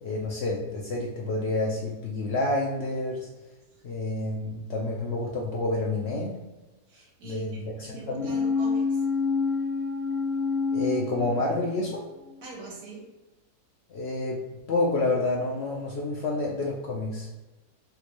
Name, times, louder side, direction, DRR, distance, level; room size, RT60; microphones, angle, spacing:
voice 1, 0.0-3.3 3.8-6.4 7.2-8.3 10.7-12.0 13.9-14.4 14.7-17.3, left 2 dB, 80° left, -2 dB, 0.6 m, -29 dB
voice 2, 6.9-9.0 12.4-13.1, right 2 dB, 75° right, -2 dB, 1.6 m, -43 dB
sound 1, 8.1-11.9 12.2-12.3, left 4 dB, 45° left, 1.1 m, -27 dB
3.7 x 2.5 x 2.9 m, 1.1 s
omnidirectional pair, 1.7 m